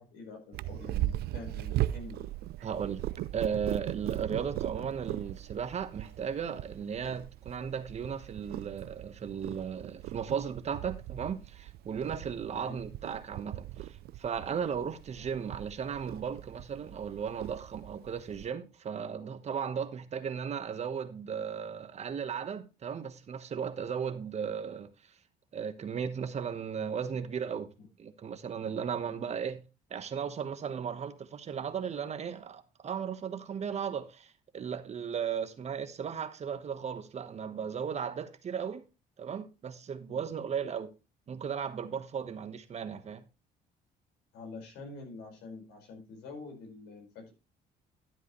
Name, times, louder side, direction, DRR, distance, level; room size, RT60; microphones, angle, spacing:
voice 1, 0.0-2.3 12.5-12.8 29.1-29.3 40.1-40.3 44.3-47.3, left 3 dB, 85° left, 5.0 m, -46 dB
Purr, 0.5-18.5, right 15 dB, 70° right, 0.5 m, -39 dB
voice 2, 2.6-24.9 25.5-27.7 28.0-29.6 29.9-38.8 39.2-40.9 41.3-43.2, right 7 dB, 40° right, 1.2 m, -36 dB
12.5 x 8.0 x 3.1 m
cardioid pair, 110°, 17 cm